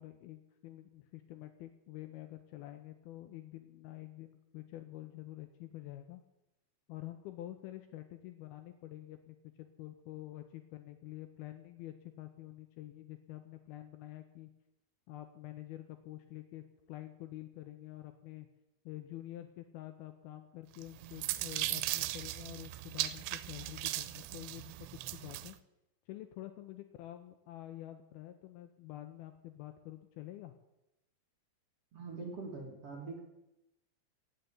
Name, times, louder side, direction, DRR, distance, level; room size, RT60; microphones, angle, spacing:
voice 1, 0.0-6.2 6.9-14.5 15.1-18.5 18.9-25.6 26.1-30.5, left 14 dB, 80° left, 8 dB, 2.3 m, -48 dB
sound 1, 20.8-25.5, right 16 dB, 90° right, 2.9 m, -38 dB
voice 2, 31.9-33.2, right 4 dB, 50° right, 0 dB, 2.1 m, -43 dB
15.5 x 6.8 x 8.6 m, 0.91 s
omnidirectional pair, 5.0 m